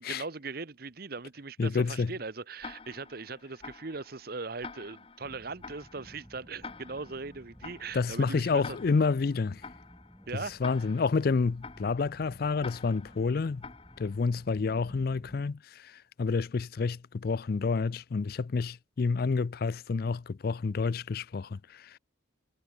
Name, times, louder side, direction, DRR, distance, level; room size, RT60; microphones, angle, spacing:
voice 1, 0.0-8.8 10.3-10.5, right 4 dB, 50° right, 1.0 m, -39 dB
voice 2, 1.6-2.1 7.9-9.6 10.3-13.7 14.0-22.0, left 4 dB, 50° left, 0.4 m, -29 dB
Tick-tock, 2.6-14.5, left 4 dB, 30° left, 1.3 m, -48 dB
sound 1, 5.2-15.4, equal, 5° right, 2.6 m, -54 dB
head